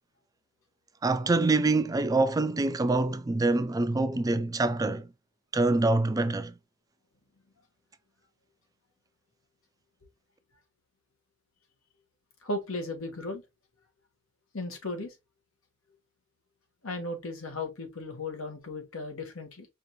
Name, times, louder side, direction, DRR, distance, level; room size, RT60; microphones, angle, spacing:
voice 1, 1.0-5.1 5.5-6.5, right 2 dB, 15° right, 0.3 m, -25 dB
voice 2, 12.4-13.4 14.5-15.1 16.8-19.7, left 2 dB, 90° left, 1.3 m, -36 dB
5.0 x 2.5 x 3.0 m
head